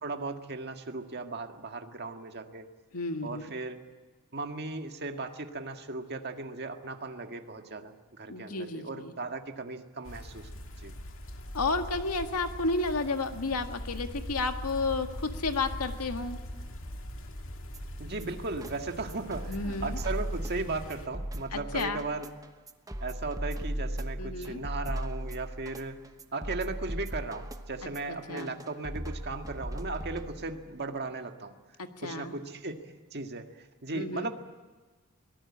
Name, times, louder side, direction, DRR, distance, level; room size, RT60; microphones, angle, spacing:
voice 1, 0.0-2.7 3.2-3.8 4.3-10.5 10.8-10.9 18.0-22.3 23.0-26.0 26.3-31.5 32.0-32.7 33.1-34.3, right 3 dB, 50° right, 5 dB, 1.8 m, -37 dB
voice 2, 2.9-3.5 8.3-9.1 11.5-16.4 19.5-20.0 21.5-22.0 24.2-24.6 28.1-28.5 31.8-32.3 33.9-34.3, left 3 dB, 85° left, 6 dB, 1.8 m, -32 dB
sound 1, 10.0-21.1, equal, 60° left, 2.3 m, -42 dB
sound 2, 17.7-30.7, right 1 dB, 15° right, 1.0 m, -38 dB
23.5 x 18.5 x 8.7 m, 1.3 s
head